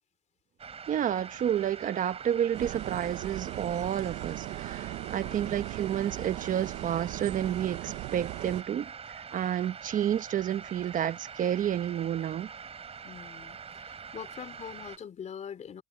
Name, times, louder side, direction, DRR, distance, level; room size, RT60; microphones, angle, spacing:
sound 1, 0.6-15.0, right 6 dB, 35° right, 6.1 m, -44 dB
voice 1, 0.9-12.5, right 10 dB, 50° right, 1.1 m, -30 dB
sound 2, 2.5-8.6, right 17 dB, 80° right, 0.7 m, -38 dB
voice 2, 5.2-5.6 13.0-15.8, left 8 dB, 45° left, 3.6 m, -43 dB
cardioid pair, 110°, 17 cm